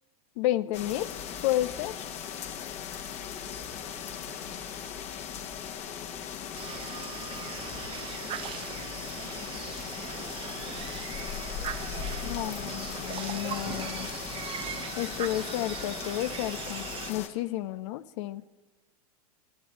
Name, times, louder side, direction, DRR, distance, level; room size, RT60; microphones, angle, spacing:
voice 1, 0.4-1.1 1.4-1.9 12.2-14.1 15.0-18.4, left 15 dB, 50° left, 15 dB, 0.6 m, -31 dB
sound 1, 0.7-17.3, left 8 dB, 35° left, 1.3 m, -38 dB
voice 2, 3.4-4.9 5.6-6.4 7.4-12.1 15.8-16.1, right 5 dB, 60° right, 5 dB, 2.6 m, -56 dB
sound 2, 6.5-17.1, right 9 dB, 25° right, 0.7 m, -40 dB
25.0 x 11.0 x 3.1 m, 1.3 s
hypercardioid pair, 95°, 20 cm